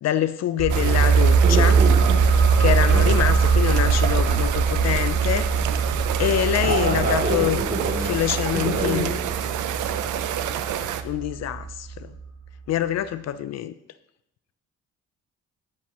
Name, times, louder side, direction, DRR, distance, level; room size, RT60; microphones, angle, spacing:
voice 1, 0.0-1.8 2.6-5.5 6.2-7.6 8.0-9.1 11.0-12.1 12.7-13.7, left 11 dB, 60° left, 14 dB, 0.5 m, -25 dB
sound 1, 0.6-12.0 12.2-12.3, right 5 dB, 50° right, 1.9 m, -21 dB
sound 2, 0.7-11.0, right 10 dB, 80° right, 0.6 m, -29 dB
voice 2, 1.4-2.3 2.9-3.2 6.6-8.2 8.5-9.3, right 2 dB, 35° right, 0 dB, 2.9 m, -26 dB
13.0 x 6.0 x 3.0 m, 0.82 s
cardioid pair, 90°, 30 cm